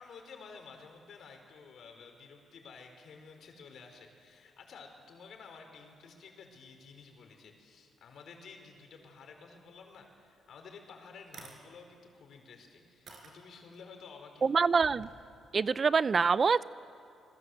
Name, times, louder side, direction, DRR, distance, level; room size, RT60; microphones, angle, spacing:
voice 1, 0.0-14.8, left 5 dB, 65° left, 4 dB, 4.7 m, -52 dB
sound 1, 10.6-10.7 11.2-11.6 12.3-12.4 13.1-13.8 14.7-15.1, right 4 dB, 55° right, 5.2 m, -50 dB
voice 2, 14.4-15.1 15.5-16.6, right 5 dB, 40° right, 17 dB, 0.5 m, -25 dB
27.0 x 21.0 x 8.0 m, 2.6 s
cardioid pair, 90°, 0 cm